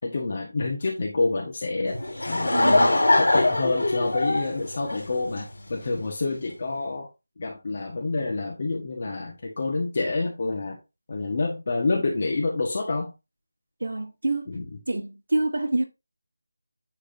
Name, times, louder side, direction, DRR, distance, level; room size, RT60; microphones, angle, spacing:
voice 1, 0.0-2.0 2.3-2.9 3.2-7.1 7.4-10.8 11.1-13.1 14.5-14.7, left 3 dB, 35° left, 1.3 m, -28 dB
Laughter / Crowd, 1.9-5.7, left 2 dB, 80° left, 2.7 m, -22 dB
voice 2, 2.5-2.9 13.8-14.5 14.9-15.8, right 2 dB, 65° right, 1.4 m, -26 dB
10.0 x 3.7 x 2.7 m
figure-of-eight pair, 175°, 0 cm